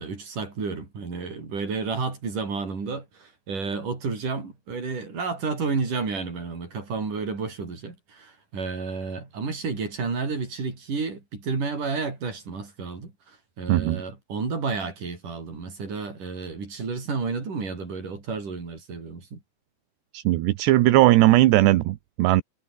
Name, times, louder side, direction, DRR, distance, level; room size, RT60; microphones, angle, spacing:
voice 1, 0.0-19.4, right 4 dB, 45° right, 7.5 m, -31 dB
voice 2, 13.7-14.0 20.1-22.4, right 16 dB, 70° right, 3.1 m, -18 dB
omnidirectional pair, 5.4 m